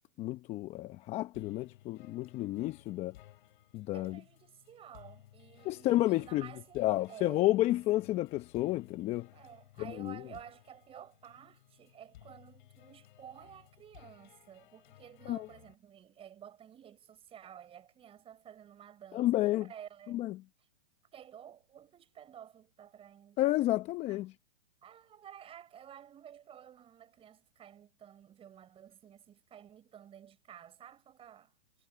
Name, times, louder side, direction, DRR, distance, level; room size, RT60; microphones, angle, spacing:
voice 1, 0.2-3.1 3.7-4.2 5.6-6.5 6.8-9.3 9.9-10.2 15.3-15.5 19.1-19.7 20.1-20.4 23.4-24.3, left 16 dB, 20° left, 0.8 m, -31 dB
sound 1, 1.3-15.7, left 14 dB, 55° left, 8.0 m, -59 dB
voice 2, 3.9-7.5 9.3-20.2 21.1-23.4 24.1-24.2 24.8-31.5, right 9 dB, 20° right, 5.5 m, -52 dB
hypercardioid pair, 140°, 30 cm